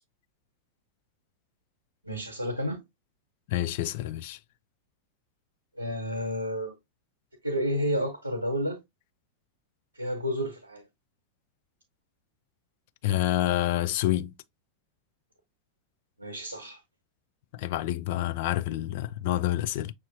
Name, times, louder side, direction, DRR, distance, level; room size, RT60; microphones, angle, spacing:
voice 1, 2.0-2.8 5.7-6.8 7.4-8.8 10.0-10.8 16.2-16.8, equal, 90° right, 1.0 m, -30 dB
voice 2, 3.5-4.4 13.0-14.3 17.5-19.9, left 14 dB, 50° left, 0.3 m, -28 dB
6.3 x 2.8 x 2.6 m
figure-of-eight pair, 90°, 0 cm